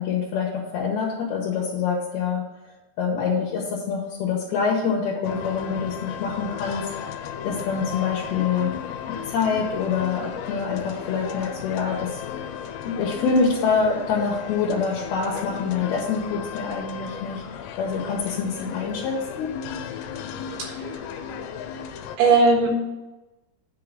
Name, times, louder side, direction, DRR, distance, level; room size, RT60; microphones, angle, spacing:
voice 1, 0.0-2.4 3.0-6.8 7.4-8.7 9.3-12.2 12.8-17.4 17.8-19.5, left 5 dB, 70° left, -3 dB, 2.7 m, -25 dB
sound 1, 5.2-22.2, left 8 dB, 90° left, 2.8 m, -35 dB
voice 2, 20.6-21.2 22.2-22.7, right 3 dB, 70° right, 0 dB, 3.3 m, -20 dB
9.5 x 3.8 x 6.6 m, 1.1 s
omnidirectional pair, 5.0 m